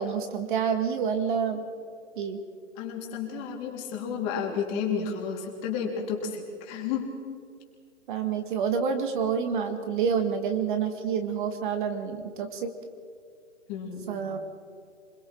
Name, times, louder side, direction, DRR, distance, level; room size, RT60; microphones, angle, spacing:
voice 1, 0.0-1.7 2.2-2.4 8.1-12.7 14.1-14.4, right 6 dB, 40° right, 7 dB, 1.8 m, -28 dB
voice 2, 2.8-7.1 13.7-14.3, left 6 dB, 30° left, 0 dB, 3.6 m, -32 dB
27.0 x 21.5 x 4.6 m, 2.4 s
hypercardioid pair, 145°, 38 cm